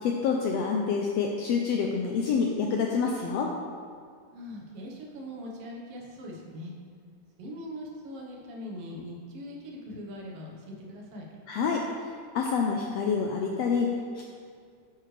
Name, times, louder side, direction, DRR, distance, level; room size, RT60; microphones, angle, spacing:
voice 1, 0.0-3.5 11.5-14.2, left 5 dB, 80° left, 1 dB, 1.4 m, -27 dB
voice 2, 4.3-6.7 7.4-11.3, equal, 60° right, -1 dB, 2.0 m, -41 dB
9.3 x 9.0 x 3.3 m, 2.1 s
omnidirectional pair, 3.6 m